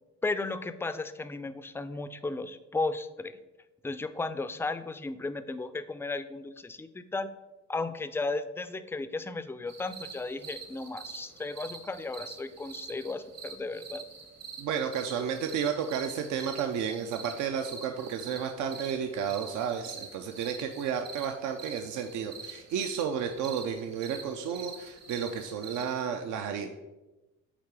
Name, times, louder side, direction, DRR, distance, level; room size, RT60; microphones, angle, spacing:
voice 1, 0.2-3.4 3.8-7.3 7.7-14.0, left 3 dB, 10° left, 11 dB, 0.3 m, -35 dB
sound 1, 9.7-26.0, right 5 dB, 60° right, 1.2 m, -46 dB
voice 2, 14.6-26.7, right 7 dB, 75° right, 5 dB, 0.5 m, -32 dB
8.4 x 2.8 x 4.7 m, 1.1 s
cardioid pair, 90°, 30 cm